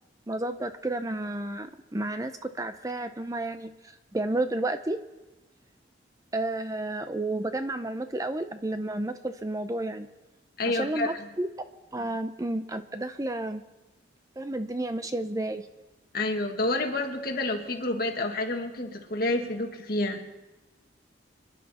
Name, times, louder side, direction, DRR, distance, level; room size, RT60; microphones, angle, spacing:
voice 1, 0.3-5.0 6.3-10.1 10.6-11.7 11.9-13.6 14.4-15.7, right 2 dB, 20° right, 9 dB, 0.6 m, -31 dB
voice 2, 10.6-11.1 16.1-20.2, left 2 dB, 50° left, 3 dB, 1.9 m, -29 dB
27.5 x 11.0 x 4.3 m, 1.1 s
head